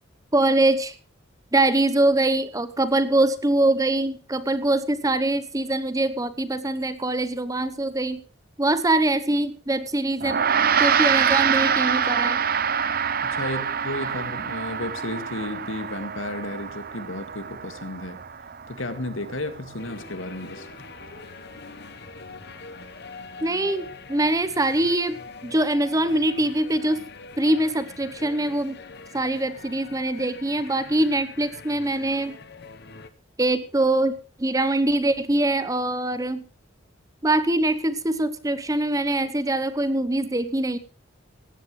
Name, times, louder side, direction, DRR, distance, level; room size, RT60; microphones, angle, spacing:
voice 1, 0.3-0.9 1.5-8.2 8.6-10.4 10.8-12.4 23.4-25.2 25.4-27.1 27.4-28.8 29.1-32.4 33.4-36.4 37.2-40.8, right 2 dB, 15° right, 14 dB, 0.9 m, -23 dB
Gong, 10.2-19.7, right 7 dB, 45° right, 0.8 m, -25 dB
voice 2, 13.2-18.2 18.7-20.7, left 1 dB, 80° left, 10 dB, 2.0 m, -33 dB
sound 1, 19.8-33.1, left 4 dB, 55° left, 1.1 m, -43 dB
18.0 x 15.0 x 3.2 m, 0.34 s
head